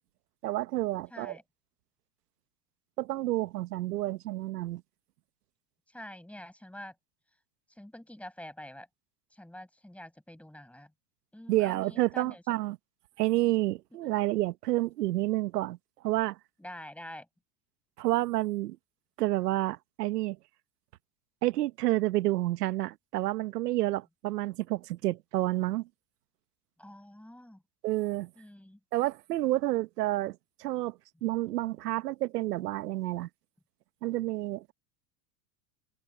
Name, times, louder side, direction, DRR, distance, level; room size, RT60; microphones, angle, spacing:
voice 1, 0.4-1.4 3.0-4.8 11.5-12.8 13.2-15.8 16.0-16.4 18.0-18.8 19.2-20.4 21.4-25.9 27.8-28.3 28.9-33.3 34.0-34.7, right 16 dB, 85° right, 1.4 m, -29 dB
voice 2, 1.1-1.4 5.9-6.9 7.7-8.9 9.3-10.9 11.3-12.4 14.0-14.1 16.6-17.3 26.8-27.6 28.4-28.8, left 1 dB, 5° left, 5.6 m, -46 dB
hypercardioid pair, 110°, 47 cm